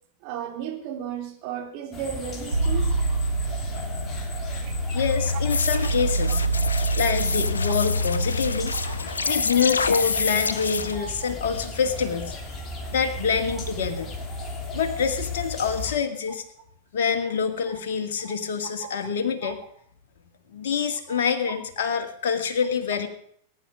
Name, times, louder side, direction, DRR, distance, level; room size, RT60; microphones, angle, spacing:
voice 1, 0.2-3.0 4.6-4.7 6.3-6.4 8.7-8.9 9.9-10.0 10.9-11.3 17.7-17.8 18.2-18.4 18.8-18.9 19.4-19.5 21.1-21.2, right 9 dB, 45° right, 3 dB, 3.4 m, -35 dB
sound 1, 1.9-15.9, left 2 dB, 20° left, 3.2 m, -36 dB
sound 2, 2.5-9.0, right 2 dB, 85° right, 0.8 m, -26 dB
voice 2, 4.9-6.5 7.0-8.8 9.3-12.4 12.9-14.1 14.7-16.5 16.9-19.6 20.5-23.1, left 6 dB, 55° left, 6 dB, 2.0 m, -26 dB
sound 3, 5.5-11.0, left 4 dB, 75° left, 0.7 m, -28 dB
20.5 x 10.0 x 5.1 m, 0.64 s
figure-of-eight pair, 90°, 0 cm